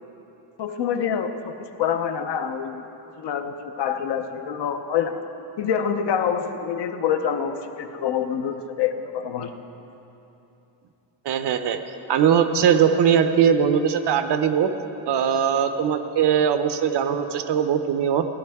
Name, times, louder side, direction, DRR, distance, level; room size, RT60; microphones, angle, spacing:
voice 1, 0.6-1.5 1.8-2.8 3.2-5.2 5.6-9.6, left 8 dB, 60° left, 7 dB, 0.8 m, -26 dB
voice 2, 11.2-11.8 12.1-14.7 15.1-18.3, right 8 dB, 60° right, 8 dB, 0.7 m, -20 dB
16.5 x 11.0 x 3.5 m, 3.0 s
wide cardioid pair, 165°, 46 cm